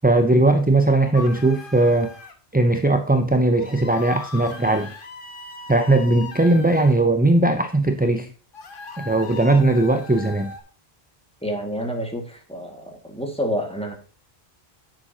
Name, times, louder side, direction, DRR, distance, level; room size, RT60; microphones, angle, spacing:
voice 1, 0.0-2.1 2.5-4.9 5.7-8.3 9.0-10.5, right 2 dB, 10° right, 7 dB, 0.5 m, -18 dB
sound 1, 1.1-2.3 3.6-6.9 8.5-10.6, left 4 dB, 60° left, 1.3 m, -39 dB
voice 2, 11.4-14.0, equal, 5° left, 2 dB, 1.9 m, -28 dB
10.5 x 7.3 x 2.8 m, 0.39 s
omnidirectional pair, 1.0 m